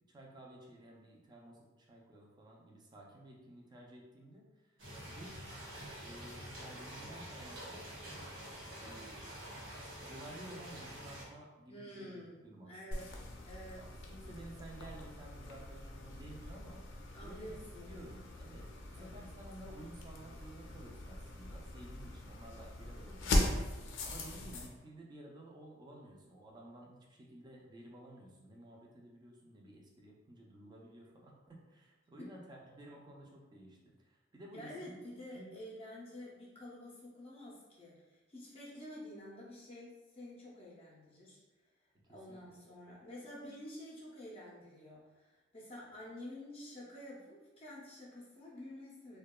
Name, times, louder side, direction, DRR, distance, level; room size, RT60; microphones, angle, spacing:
voice 1, 0.1-5.4 6.0-7.9 8.8-9.2 10.0-13.1 13.7-16.8 17.2-23.7 24.0-35.0 35.3-35.5 42.3-42.5, right 1 dB, 25° right, -1 dB, 0.4 m, -53 dB
sound 1, 4.8-11.3, equal, 80° right, 0.8 m, -47 dB
voice 2, 11.7-12.4 12.6-13.1 13.4-13.8 17.1-18.1 18.9-19.3 32.2-32.4 34.5-41.4 42.1-49.2, left 1 dB, 30° left, -6 dB, 0.5 m, -49 dB
sound 2, 12.9-24.7, left 1 dB, 80° left, 0.4 m, -40 dB
2.7 x 2.1 x 2.2 m, 1.1 s
head